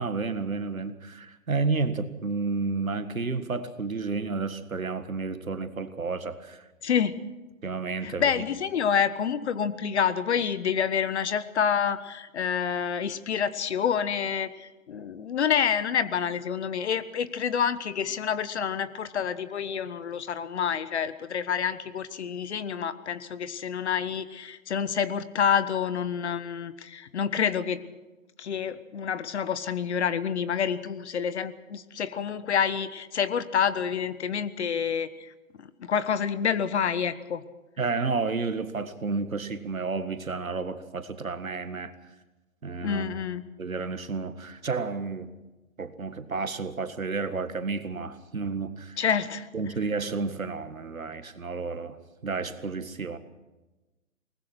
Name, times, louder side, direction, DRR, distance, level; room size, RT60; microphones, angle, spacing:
voice 1, 0.0-6.6 7.6-8.3 37.8-41.9 42.6-43.1 43.6-45.3 45.8-49.0 49.5-52.0 52.2-53.2, right 4 dB, 80° right, 11 dB, 1.8 m, -31 dB
voice 2, 6.8-7.2 8.0-27.8 28.4-35.3 35.6-37.4 42.8-43.4 49.0-49.5, left 7 dB, 55° left, 14 dB, 1.3 m, -28 dB
22.0 x 19.5 x 6.1 m, 1.1 s
figure-of-eight pair, 130°, 41 cm